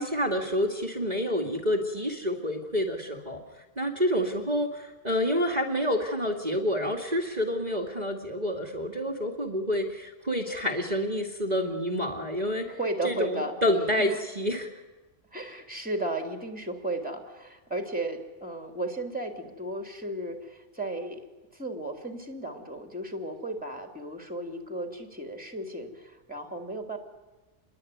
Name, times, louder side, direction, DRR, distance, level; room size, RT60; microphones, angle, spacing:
voice 1, 0.0-3.4 3.8-12.8 13.0-14.1 14.4-14.7, equal, 35° right, 2 dB, 2.5 m, -28 dB
voice 2, 12.7-13.6 14.0-14.2 15.3-21.2 21.5-27.0, right 1 dB, 5° right, 5 dB, 3.2 m, -34 dB
28.5 x 22.0 x 9.5 m, 1.2 s
omnidirectional pair, 1.3 m